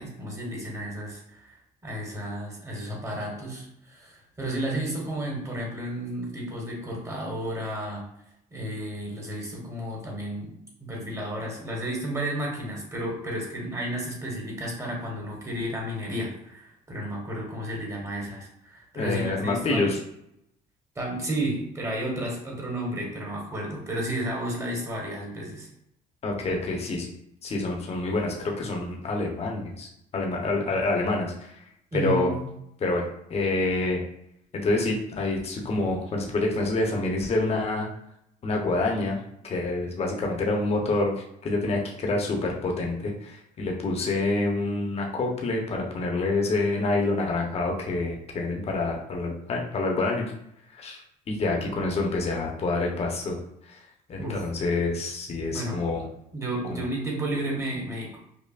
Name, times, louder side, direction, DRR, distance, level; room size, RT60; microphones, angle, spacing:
voice 1, 0.0-8.1 8.5-10.5 10.8-19.9 20.9-25.7 31.9-32.5 54.2-54.5 55.5-55.8 56.3-58.2, right 1 dB, 15° right, -1 dB, 1.2 m, -32 dB
voice 2, 18.9-20.0 26.2-27.1 27.4-31.6 31.9-32.3 32.8-34.0 34.5-37.9 38.4-39.2 39.4-50.3 50.7-51.0 51.3-53.4 53.7-53.8 54.1-56.0 56.7-56.8, left 2 dB, 40° left, 0 dB, 0.8 m, -27 dB
5.4 x 2.1 x 2.4 m, 0.76 s
cardioid pair, 110°, 17 cm